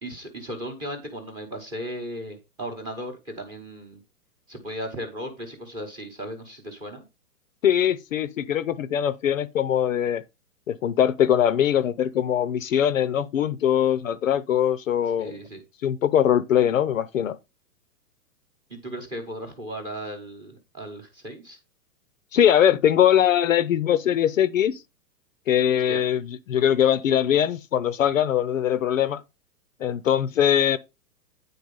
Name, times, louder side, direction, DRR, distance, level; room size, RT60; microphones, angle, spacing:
voice 1, 0.0-4.0 4.5-7.0 15.2-15.6 18.7-21.6 25.9-26.0, equal, 10° right, 1.0 m, -36 dB
voice 2, 7.6-10.2 10.7-15.4 15.8-17.4 22.3-24.8 25.5-26.2 26.5-29.2 29.8-30.8, left 10 dB, 55° left, 0.7 m, -21 dB
9.6 x 4.1 x 5.3 m
hypercardioid pair, 170°, 47 cm